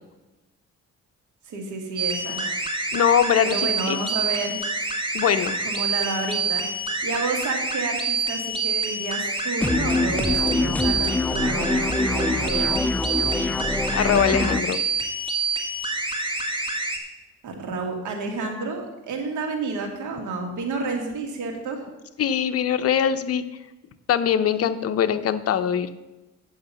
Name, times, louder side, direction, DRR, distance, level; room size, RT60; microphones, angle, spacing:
voice 1, 1.5-2.6 3.4-4.7 5.7-6.7 7.0-12.8 17.4-21.9, right 3 dB, 75° right, 2 dB, 2.0 m, -30 dB
sound 1, 2.0-17.0, right 3 dB, 15° right, 1.5 m, -27 dB
voice 2, 2.9-4.0 5.1-5.6 13.9-14.8 22.2-23.4 24.1-25.9, left 8 dB, 50° left, 10 dB, 0.7 m, -22 dB
sound 2, 9.6-14.6, left 2 dB, 5° left, 0.3 m, -25 dB
8.7 x 6.3 x 5.5 m, 1.0 s
cardioid pair, 90°, 30 cm